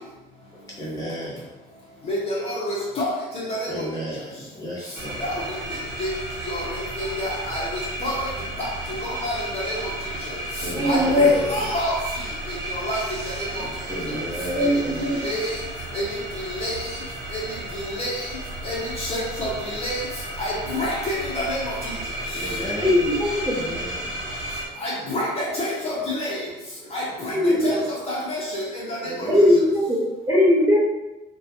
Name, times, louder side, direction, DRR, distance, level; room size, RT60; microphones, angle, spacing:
voice 1, 0.8-1.8 3.7-5.4 10.6-11.7 13.6-15.3 22.3-23.2 23.5-24.6 26.8-26.9 27.3-27.7 29.0-29.6, equal, 20° left, -6 dB, 1.1 m, -34 dB
voice 2, 2.1-3.9 5.2-6.1 6.5-8.3 8.6-8.7 9.0-9.8 10.8-11.9 12.5-13.0 13.3-13.6 15.2-15.5 15.9-16.1 16.3-16.9 17.3-17.4 17.7-18.3 18.6-20.1 20.4-21.7 24.8-26.4 26.9-27.4 27.6-29.3, left 1 dB, 35° left, -5 dB, 0.7 m, -28 dB
sound 1, 4.9-24.7, right 1 dB, 90° right, 0.9 m, -33 dB
voice 3, 10.7-11.4 14.5-15.2 22.8-23.6 27.3-27.8 29.3-30.0 30.3-30.8, left 1 dB, 15° right, -6 dB, 0.8 m, -19 dB
2.6 x 2.2 x 2.8 m, 1.0 s
cardioid pair, 110°, 17 cm